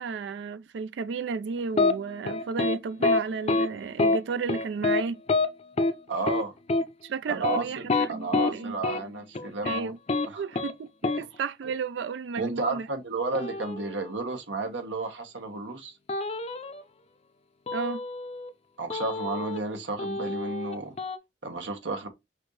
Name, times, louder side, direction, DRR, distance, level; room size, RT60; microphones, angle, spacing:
voice 1, 0.0-5.2 7.0-8.8 9.6-10.0 10.4-12.9 17.7-18.0, right 5 dB, 70° right, 0.4 m, -33 dB
sound 1, 1.8-1.9 2.3-2.8 3.0-3.2 3.5-3.7 4.0-4.2 4.5-5.0 5.3-5.5 5.8-5.9 6.3-6.4 6.7-6.8 7.3-8.5 8.8-9.0 9.4-9.8 10.1-10.3 10.5-10.7 11.0-11.2 13.4-14.1 16.1-16.8 17.7-18.5 18.9-19.7 20.0-21.2, left 3 dB, 35° left, 0.5 m, -27 dB
voice 2, 6.1-6.5 7.3-9.9 10.2-10.4 12.4-15.9 18.8-20.9 21.4-22.1, right 3 dB, 85° right, 1.3 m, -32 dB
6.1 x 2.6 x 3.2 m
head